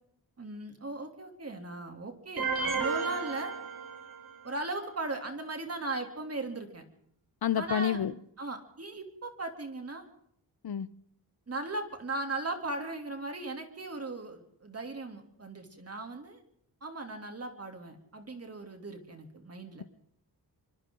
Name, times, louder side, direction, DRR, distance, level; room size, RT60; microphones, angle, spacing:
voice 1, 0.4-3.5 4.4-6.8 7.6-8.0 8.4-10.0 11.5-16.4 16.8-19.8, right 2 dB, 40° right, 3.2 m, -38 dB
sound 1, 2.4-4.5, right 5 dB, 65° right, 4.4 m, -33 dB
voice 2, 7.4-8.1 10.6-10.9, left 9 dB, 70° left, 0.9 m, -28 dB
27.0 x 24.5 x 3.9 m
wide cardioid pair, 125°, 39 cm